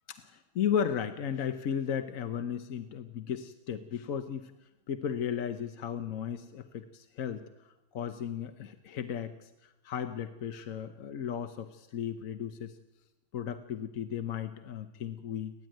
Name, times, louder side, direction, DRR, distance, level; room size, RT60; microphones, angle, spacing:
voice 1, 0.1-4.5 4.9-12.8 13.3-15.5, left 8 dB, 55° left, 8 dB, 1.0 m, -35 dB
29.5 x 12.0 x 9.1 m, 1.0 s
omnidirectional pair, 2.2 m